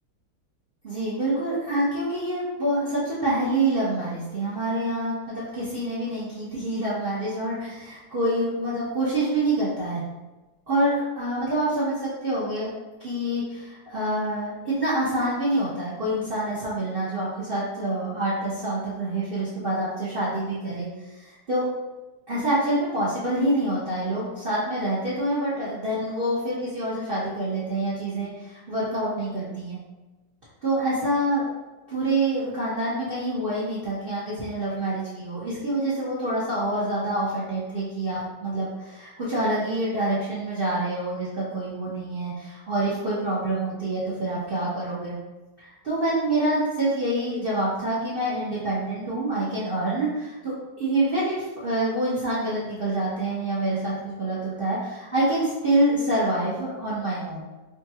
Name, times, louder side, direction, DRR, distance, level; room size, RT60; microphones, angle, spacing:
voice 1, 0.8-10.0 10.7-12.7 13.0-20.9 21.1-21.7 22.3-29.8 30.6-31.5 31.9-45.2 45.6-57.4, right 1 dB, 65° right, -9 dB, 0.5 m, -26 dB
5.0 x 2.5 x 2.8 m, 1.1 s
omnidirectional pair, 2.4 m